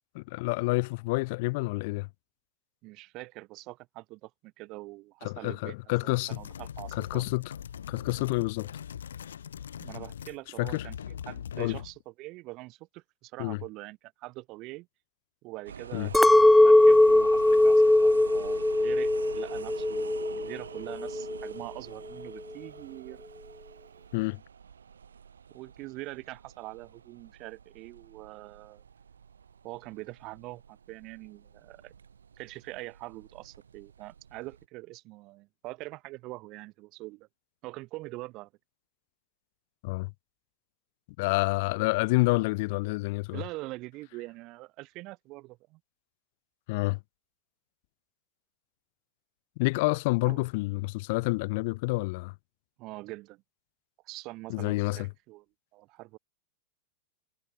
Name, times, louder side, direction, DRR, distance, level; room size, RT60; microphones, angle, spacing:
voice 1, 0.1-2.1 5.2-6.4 6.9-7.5 7.9-8.7 10.6-10.9 11.6-11.8 13.4-13.6 15.9-16.1 24.1-24.4 39.8-40.1 41.2-43.4 46.7-47.0 49.6-52.3 54.5-55.1, left 24 dB, 55° left, 1.2 m, -28 dB
voice 2, 2.8-5.7 6.3-7.2 9.8-14.9 15.4-16.3 16.6-23.2 25.5-28.8 29.6-31.9 32.3-37.3 37.6-38.5 43.3-45.8 50.2-50.4 52.8-53.4 54.0-55.4 55.7-56.2, right 21 dB, 45° right, 6.1 m, -43 dB
sound 1, 6.2-10.4 10.6-12.0, left 8 dB, 80° left, 0.8 m, -41 dB
sound 2, 15.7-34.7, right 7 dB, 85° right, 2.1 m, -47 dB
Chink clink, 16.1-20.5 20.9-21.5, left 2 dB, 5° left, 0.3 m, -20 dB
hypercardioid pair, 100°, 0 cm